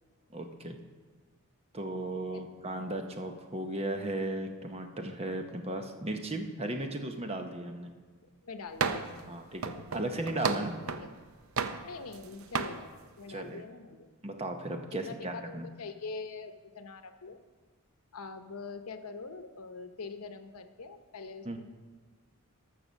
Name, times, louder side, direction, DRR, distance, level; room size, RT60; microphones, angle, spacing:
voice 1, 0.3-0.8 1.7-7.9 9.3-10.8 13.3-13.6 14.2-15.7 21.4-21.6, right 1 dB, 30° right, 5 dB, 0.9 m, -36 dB
voice 2, 2.1-2.5 8.2-9.4 11.0-11.1 11.8-12.9 13.2-14.1 14.9-17.4 18.1-21.6, left 4 dB, 90° left, 8 dB, 0.8 m, -44 dB
sound 1, 8.8-9.2 9.6-11.1 11.6-12.2 12.5-12.8, right 5 dB, 70° right, 0.6 m, -33 dB
13.5 x 5.8 x 6.3 m, 1.4 s
head